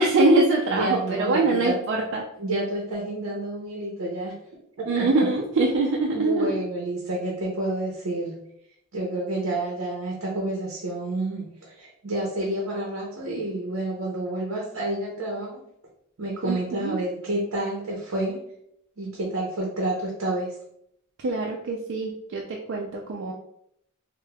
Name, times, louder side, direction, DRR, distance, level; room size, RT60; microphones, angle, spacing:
voice 1, 0.0-2.2 4.9-6.6 16.4-17.0 21.2-23.3, right 2 dB, 60° right, -1 dB, 0.4 m, -23 dB
voice 2, 0.7-1.8 2.4-4.3 4.8-5.3 6.1-8.4 8.9-15.6 16.2-18.4 19.0-20.5, right 1 dB, 85° right, -2 dB, 0.7 m, -29 dB
4.8 x 2.1 x 2.2 m, 0.73 s
head